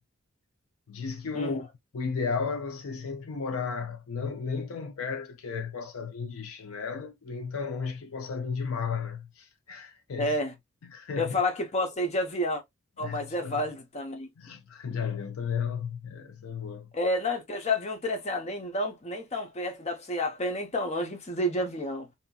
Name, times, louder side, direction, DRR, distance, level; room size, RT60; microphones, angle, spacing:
voice 1, 0.9-1.7 1.9-10.4 10.9-11.4 13.0-13.6 14.4-16.9, left 5 dB, 70° left, 0.5 m, -34 dB
voice 2, 10.2-10.5 11.2-12.6 13.0-14.3 16.9-22.1, left 1 dB, 30° left, 0.8 m, -30 dB
2.8 x 2.7 x 2.2 m
head